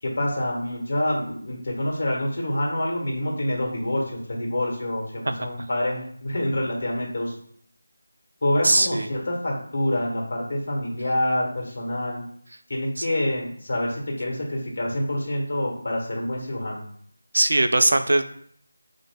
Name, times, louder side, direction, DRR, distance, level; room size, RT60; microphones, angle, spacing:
voice 1, 0.0-7.4 8.4-12.2 12.7-16.8, left 1 dB, 50° left, -1 dB, 1.4 m, -27 dB
voice 2, 8.6-9.1 13.0-13.1 17.3-18.2, right 2 dB, 65° right, 8 dB, 0.4 m, -20 dB
6.1 x 2.5 x 2.2 m, 0.63 s
figure-of-eight pair, 165°, 0 cm